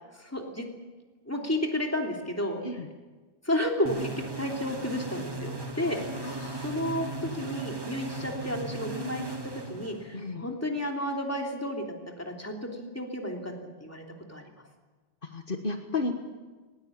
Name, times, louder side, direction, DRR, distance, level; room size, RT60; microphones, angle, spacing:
voice 1, 0.1-0.6 1.3-2.6 3.4-4.1 4.4-5.5 5.8-6.3 6.6-13.5 13.8-14.0 14.3-14.4, left 1 dB, 15° left, 1 dB, 3.1 m, -32 dB
sound 1, 3.9-10.3, right 2 dB, 25° right, 1.9 m, -37 dB
voice 2, 6.2-6.7 10.1-10.4 15.2-16.1, left 3 dB, 55° left, 5 dB, 1.6 m, -33 dB
19.5 x 19.0 x 8.8 m, 1.3 s
omnidirectional pair, 1.1 m